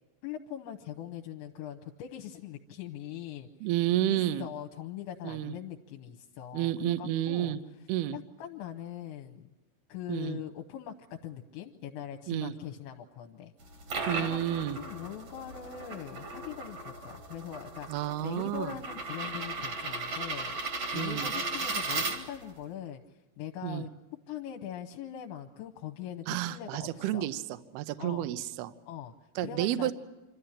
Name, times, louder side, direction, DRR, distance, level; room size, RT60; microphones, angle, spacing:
voice 1, 0.2-3.7 4.1-7.6 8.1-9.5 9.9-13.5 14.2-20.5 20.9-23.9 24.3-27.3 28.0-28.3 28.9-29.1 29.4-29.9, left 10 dB, 80° left, 2 dB, 3.1 m, -42 dB
voice 2, 3.6-4.5 5.2-5.5 6.5-7.6 7.9-8.2 10.1-10.4 12.3-12.5 14.1-14.8 17.9-18.8 20.9-21.3 23.6-23.8 26.3-28.7 29.4-29.9, right 13 dB, 80° right, 11 dB, 2.3 m, -31 dB
sound 1, 13.6-22.6, right 3 dB, 50° right, 1.9 m, -36 dB
26.5 x 14.0 x 10.0 m, 1.1 s
omnidirectional pair, 5.6 m